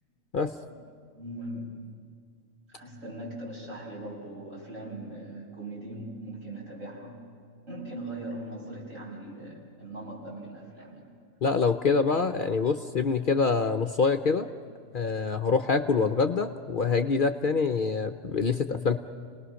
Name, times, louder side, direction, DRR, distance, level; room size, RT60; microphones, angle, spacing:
voice 1, 1.1-1.7 2.7-7.2 7.7-11.1 12.4-12.5 12.8-12.9, right 1 dB, 75° right, -4 dB, 6.6 m, -40 dB
voice 2, 11.4-14.5 14.9-19.0, left 4 dB, 50° left, 8 dB, 0.7 m, -25 dB
30.0 x 19.5 x 6.3 m, 2.1 s
omnidirectional pair, 1.4 m